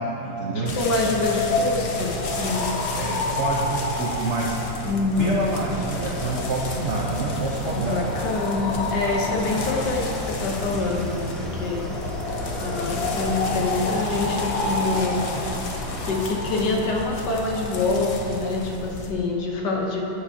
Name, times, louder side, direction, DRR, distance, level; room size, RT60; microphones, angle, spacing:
voice 1, 0.0-0.7 2.9-4.6 5.2-8.0 8.6-8.8, right 3 dB, 80° right, -3 dB, 0.6 m, -28 dB
voice 2, 0.5-2.6 4.8-5.5 7.7-11.9 12.1-15.3 16.1-20.0, left 3 dB, 60° left, -1 dB, 1.4 m, -26 dB
sound 1, 0.7-19.1, left 2 dB, 80° left, 0.5 m, -29 dB
sound 2, 5.1-16.2, equal, ahead, 0.4 m, -35 dB
12.5 x 8.7 x 2.7 m, 2.9 s
omnidirectional pair, 2.3 m